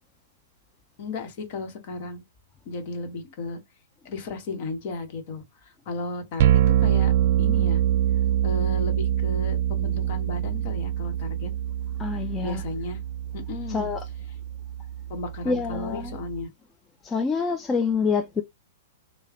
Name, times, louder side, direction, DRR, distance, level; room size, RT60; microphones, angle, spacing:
voice 1, 1.0-2.2 2.6-3.6 4.0-5.4 5.8-7.1 7.4-7.8 8.4-11.5 12.4-13.0 13.3-13.9 15.1-16.5, left 3 dB, 55° left, 1.3 m, -34 dB
sound 1, 6.4-16.4, right 11 dB, 60° right, 0.3 m, -25 dB
voice 2, 12.0-12.6 13.7-14.0 15.5-16.1 17.0-18.4, left 5 dB, 20° left, 0.4 m, -26 dB
3.2 x 2.3 x 3.7 m
hypercardioid pair, 120°, 0 cm